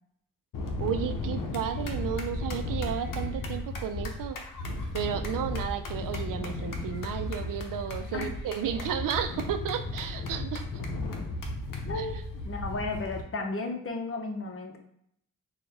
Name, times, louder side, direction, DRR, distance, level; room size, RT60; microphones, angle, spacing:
sound 1, 0.5-13.2, left 2 dB, 80° left, 0.7 m, -35 dB
voice 1, 0.8-4.4 4.9-10.6 12.0-12.1, right 9 dB, 75° right, 8 dB, 0.5 m, -33 dB
voice 2, 11.9-12.2 12.4-14.8, left 3 dB, 40° left, 3 dB, 0.8 m, -34 dB
4.2 x 2.3 x 3.3 m, 0.72 s
cardioid pair, 50°, 32 cm